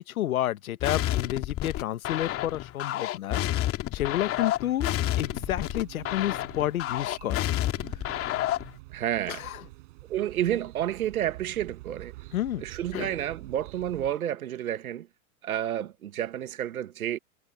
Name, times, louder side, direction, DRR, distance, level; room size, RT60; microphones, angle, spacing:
voice 1, 0.1-3.4 3.9-4.9 5.2-7.4 9.3-9.6 12.3-12.6 12.9-13.1, left 13 dB, 75° left, 1.2 m, -30 dB
sound 1, 0.8-8.8, left 13 dB, 30° left, 2.4 m, -29 dB
sound 2, 4.8-14.2, right 22 dB, 55° right, 7.8 m, -47 dB
voice 2, 8.9-9.4 10.1-12.1 12.6-15.1 15.4-17.2, right 11 dB, 75° right, 1.8 m, -30 dB
hypercardioid pair, 110°, 43 cm